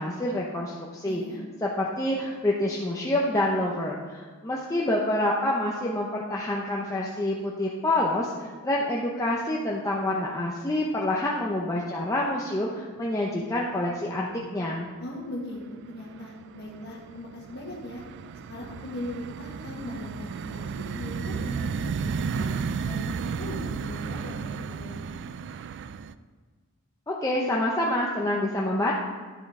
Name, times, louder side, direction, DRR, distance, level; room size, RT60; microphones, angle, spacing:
voice 1, 0.0-1.2 1.6-14.9 27.1-28.9, left 1 dB, 15° left, -3 dB, 0.7 m, -27 dB
voice 2, 1.0-1.4 15.0-18.0 18.5-22.5 22.8-25.3, left 1 dB, 50° left, -3 dB, 1.5 m, -39 dB
sound 1, 13.0-13.6 13.9-14.6 15.0-26.1, right 5 dB, 55° right, 0.3 m, -34 dB
10.5 x 7.2 x 3.7 m, 1.4 s
head